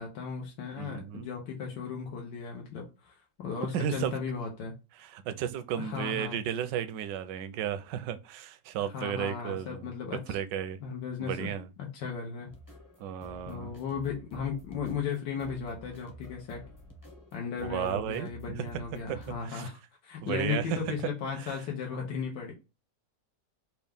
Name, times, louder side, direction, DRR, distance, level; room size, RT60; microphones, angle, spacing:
voice 1, 0.0-4.7 5.8-6.4 8.8-10.4 10.8-11.5 11.8-12.5 13.5-16.6 17.3-22.5, left 6 dB, 85° left, 1.5 m, -36 dB
voice 2, 0.8-1.3 3.7-4.1 5.0-9.9 10.3-10.8 11.2-11.7 13.0-13.7 17.6-18.7 19.1-19.2 19.4-19.7 20.2-20.9 21.3-21.6, right 9 dB, 80° right, 1.2 m, -34 dB
sound 1, 12.5-19.4, left 1 dB, 15° left, 0.7 m, -50 dB
4.4 x 2.3 x 3.4 m
omnidirectional pair, 1.9 m